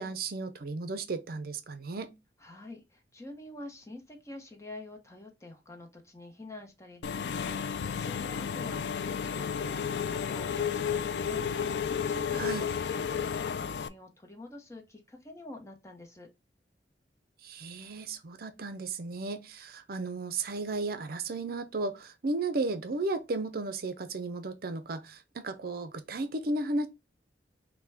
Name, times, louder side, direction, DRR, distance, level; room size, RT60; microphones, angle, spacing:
voice 1, 0.0-2.1 12.3-12.7 17.4-26.9, right 3 dB, 55° right, 0.5 m, -34 dB
voice 2, 2.4-16.3, left 2 dB, 15° left, 0.8 m, -47 dB
Engine / Mechanisms, 7.0-13.9, left 7 dB, 70° left, 0.4 m, -32 dB
5.7 x 2.2 x 3.4 m
head